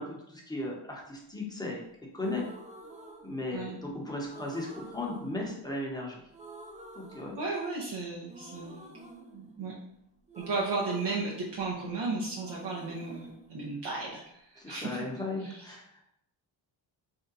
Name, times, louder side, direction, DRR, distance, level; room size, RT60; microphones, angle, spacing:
voice 1, 0.0-1.8 2.1-2.5 3.2-6.2 7.0-7.4 14.6-15.8, left 2 dB, 10° left, -2 dB, 0.8 m, -36 dB
sound 1, 2.2-3.8 4.3-6.0 6.3-7.9 8.3-12.0 12.3-14.3, right 2 dB, 15° right, 0.3 m, -49 dB
voice 2, 7.4-8.9 9.3-9.7 10.4-15.1 15.4-15.7, right 3 dB, 55° right, -4 dB, 0.8 m, -35 dB
2.7 x 2.2 x 3.9 m, 0.76 s
cardioid pair, 75°, 49 cm